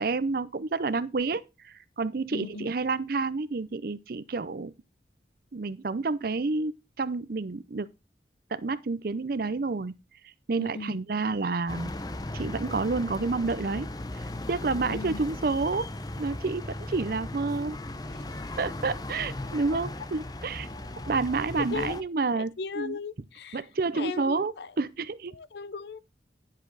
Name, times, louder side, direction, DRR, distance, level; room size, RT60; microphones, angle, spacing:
voice 1, 0.0-4.7 5.5-6.7 7.0-7.9 8.5-9.9 10.2-11.9 12.3-13.9 14.1-15.9 16.2-17.8 18.6-20.7 21.1-23.0 23.5-25.3, right 3 dB, 55° right, 0.5 m, -29 dB
voice 2, 2.3-2.7 10.6-11.0 14.8-15.2 18.1-18.3 19.7-19.8 21.7-21.9 22.4-23.6 23.9-24.7 25.3-26.0, left 5 dB, 65° left, 0.5 m, -37 dB
sound 1, 11.7-22.0, left 1 dB, 20° left, 0.7 m, -37 dB
10.5 x 7.4 x 3.9 m
head